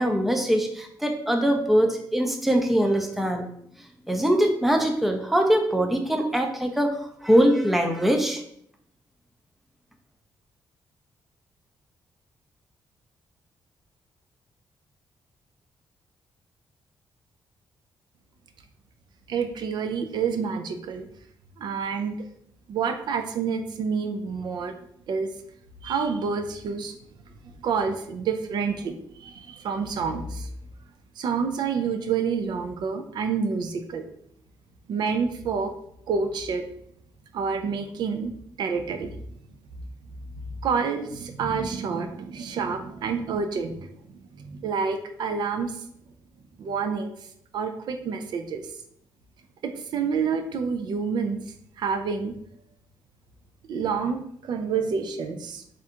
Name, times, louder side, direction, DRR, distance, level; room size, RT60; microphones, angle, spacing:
voice 1, 0.0-3.5 4.1-8.4, equal, ahead, 3 dB, 0.5 m, -22 dB
voice 2, 19.3-21.1 21.6-22.3 22.7-24.8 25.1-25.3 25.8-27.0 27.6-30.5 31.2-34.0 34.9-35.7 36.1-36.6 37.3-38.3 38.6-39.2 40.6-43.9 44.4-45.9 46.6-47.1 47.5-48.7 49.6-51.4 51.8-52.3 53.7-55.6, right 5 dB, 65° right, 7 dB, 0.4 m, -28 dB
3.5 x 2.5 x 4.3 m, 0.69 s
cardioid pair, 150°, 8 cm